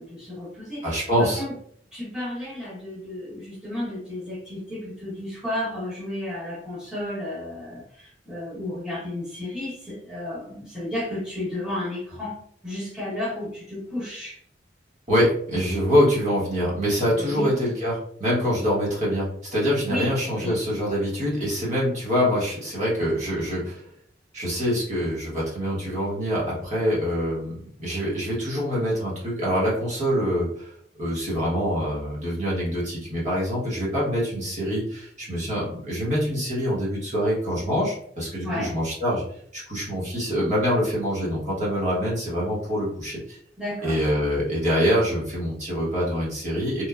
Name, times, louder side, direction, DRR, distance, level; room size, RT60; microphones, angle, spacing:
voice 1, 0.0-1.5 1.9-12.4 12.6-14.4 17.2-17.5 19.9-20.1 20.4-20.5 38.4-38.8 43.6-44.0, left 1 dB, 5° right, -8 dB, 1.0 m, -32 dB
voice 2, 0.8-1.4 15.1-23.8 24.3-30.7 31.0-39.2 39.5-43.4 43.8-46.9, equal, 40° right, -6 dB, 1.0 m, -25 dB
3.1 x 2.1 x 2.3 m, 0.63 s
head